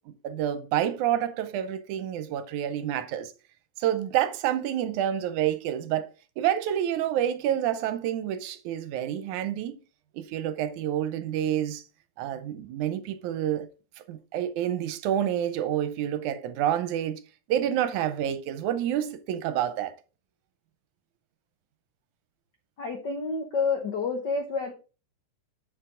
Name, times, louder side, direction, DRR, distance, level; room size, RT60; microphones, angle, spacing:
voice 1, 0.1-3.3 3.8-6.1 6.4-9.8 10.1-11.8 12.2-13.7 14.0-17.2 17.5-19.9, right 11 dB, 80° right, 2.2 m, -28 dB
voice 2, 22.8-24.7, left 4 dB, 65° left, 1.0 m, -29 dB
7.5 x 6.8 x 3.7 m
omnidirectional pair, 3.5 m